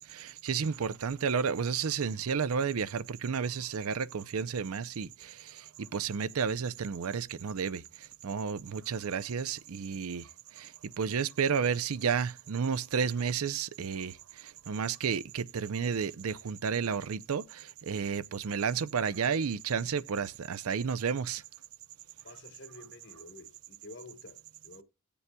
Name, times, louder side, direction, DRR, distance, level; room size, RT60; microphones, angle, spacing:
voice 1, 0.0-21.4, right 6 dB, 80° right, 0.5 m, -32 dB
voice 2, 22.2-24.8, left 2 dB, 50° left, 1.2 m, -50 dB
18.0 x 7.0 x 2.2 m
head